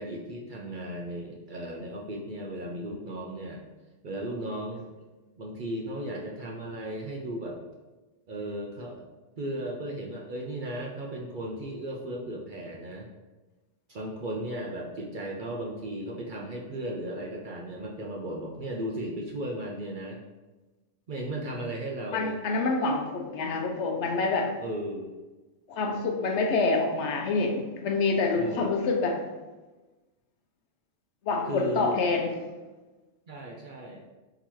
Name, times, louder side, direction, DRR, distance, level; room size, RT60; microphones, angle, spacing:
voice 1, 0.0-3.6 4.0-4.9 5.4-7.6 8.3-9.0 9.4-13.1 13.9-20.2 21.1-22.4 24.6-25.1 28.4-28.8 31.4-32.0 33.3-34.0, right 1 dB, 55° right, -1 dB, 0.5 m, -35 dB
voice 2, 22.1-24.5 25.7-29.2 31.2-32.3, left 3 dB, 70° left, 2 dB, 0.9 m, -27 dB
3.8 x 2.8 x 4.5 m, 1.2 s
omnidirectional pair, 1.3 m